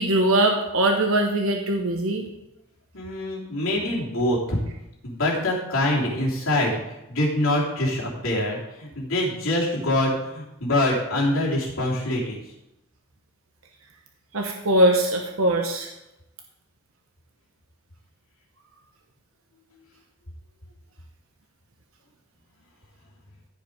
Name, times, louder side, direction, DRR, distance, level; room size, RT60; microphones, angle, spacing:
voice 1, 0.0-2.3 14.3-15.9, right 1 dB, 80° right, 3 dB, 1.0 m, -21 dB
voice 2, 2.9-4.6 5.0-12.4, left 1 dB, 80° left, -4 dB, 3.3 m, -25 dB
15.0 x 5.2 x 5.0 m, 0.91 s
head